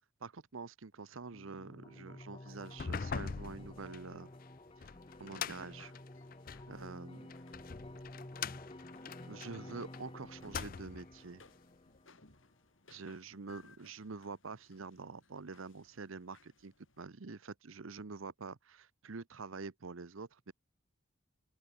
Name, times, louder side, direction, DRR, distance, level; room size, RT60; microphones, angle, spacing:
voice 1, 0.2-4.3 4.8-4.9 5.2-5.9 6.7-7.3 9.2-11.4 12.9-20.5, right 4 dB, 75° right, 0.8 m, -46 dB
sound 1, 1.3-12.3, left 1 dB, 25° left, 1.1 m, -51 dB
sound 2, 2.6-6.7 7.3-10.0 10.4-11.1, left 6 dB, 40° left, 0.5 m, -43 dB
sound 3, 5.4-17.0, left 4 dB, 70° left, 4.4 m, -65 dB
open air
head